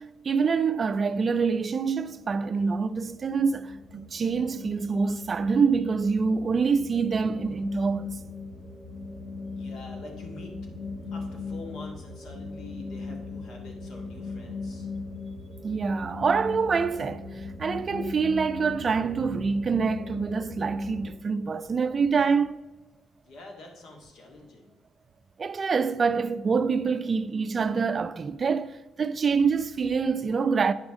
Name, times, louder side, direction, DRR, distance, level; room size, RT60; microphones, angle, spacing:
voice 1, 0.0-8.1 15.6-22.6 25.4-30.7, right 5 dB, 40° right, 0.3 m, -26 dB
sound 1, 2.1-21.1, left 3 dB, 50° left, 2.8 m, -39 dB
voice 2, 9.6-10.5 11.1-14.9 23.2-24.7, left 2 dB, 75° left, 1.9 m, -45 dB
8.8 x 6.2 x 3.7 m
cardioid pair, 90°, 0 cm